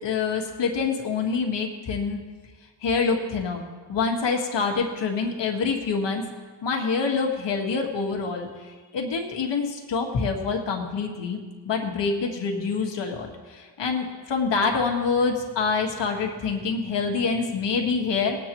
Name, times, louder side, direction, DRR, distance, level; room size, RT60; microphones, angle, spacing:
voice 1, 0.0-2.2 2.8-3.6 3.9-6.2 6.6-8.5 8.9-11.4 11.6-18.4, left 4 dB, 75° left, 2 dB, 1.7 m, -26 dB
20.5 x 8.4 x 3.0 m, 1.4 s
cardioid pair, 70°, 43 cm